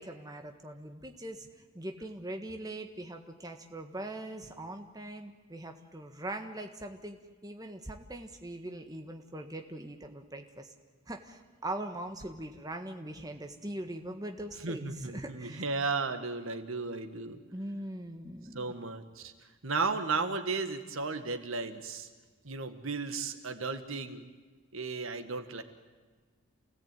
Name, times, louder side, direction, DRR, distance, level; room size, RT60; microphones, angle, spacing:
voice 1, 0.0-1.5 1.7-7.2 7.4-10.7 11.1-15.7 17.5-18.6, right 1 dB, 15° right, 4 dB, 1.5 m, -41 dB
voice 2, 14.6-17.4 18.5-19.3 19.6-22.1 22.4-24.2 24.7-25.6, right 4 dB, 70° right, 8 dB, 1.8 m, -34 dB
28.5 x 17.5 x 9.2 m, 1.4 s
head